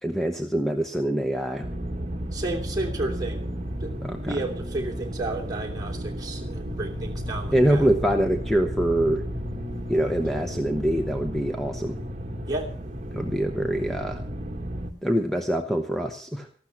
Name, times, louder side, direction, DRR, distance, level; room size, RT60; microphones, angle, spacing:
voice 1, 0.0-1.7 4.0-4.4 7.5-9.3 9.9-12.0 13.1-14.2 15.0-16.5, right 1 dB, ahead, 0.9 m, -24 dB
sound 1, 1.6-14.9, equal, 40° right, 1.5 m, -33 dB
voice 2, 2.3-3.5 3.8-7.9 12.4-12.7 13.7-13.9, right 2 dB, 25° right, 2.9 m, -32 dB
14.5 x 12.5 x 5.9 m
head